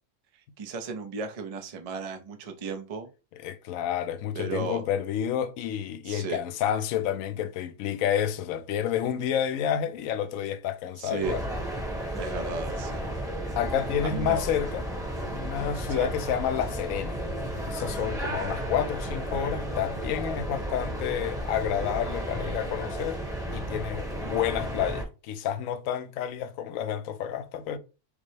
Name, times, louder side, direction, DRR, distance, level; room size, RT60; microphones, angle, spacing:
voice 1, 0.6-3.1 4.3-4.8 6.0-6.4 11.0-11.4 12.2-13.1 14.0-14.4 16.0-16.1, right 4 dB, 65° right, 0.3 m, -35 dB
voice 2, 3.3-11.4 13.6-14.9 15.3-17.2 17.6-23.2 23.5-27.8, left 9 dB, 70° left, 0.9 m, -29 dB
sound 1, 11.2-25.0, right 1 dB, 5° right, 0.7 m, -33 dB
5.1 x 2.1 x 3.1 m
omnidirectional pair, 1.6 m